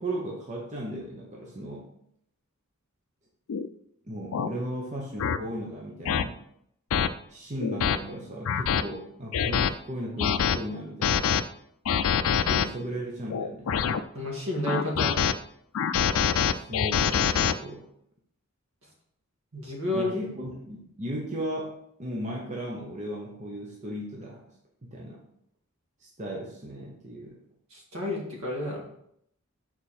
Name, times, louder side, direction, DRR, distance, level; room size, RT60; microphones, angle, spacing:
voice 1, 0.0-1.9 4.1-6.4 7.3-11.3 12.3-13.8 16.5-17.9 19.9-24.5 24.8-25.2 26.0-27.4, right 1 dB, 35° right, -2 dB, 1.0 m, -36 dB
sound 1, 3.5-3.7 4.3-4.5 5.2-5.4 6.1-6.2 6.9-7.1 7.6-8.0 8.5-8.8 9.3-9.7 10.2-10.6 11.0-11.4 11.9-12.7 13.3-14.0 14.7-15.3 15.7-17.5, left 8 dB, 70° left, 0.4 m, -25 dB
voice 2, 14.1-15.1 19.5-20.1 27.7-28.8, left 1 dB, 70° right, -1 dB, 2.0 m, -30 dB
6.7 x 4.3 x 4.4 m, 0.72 s
head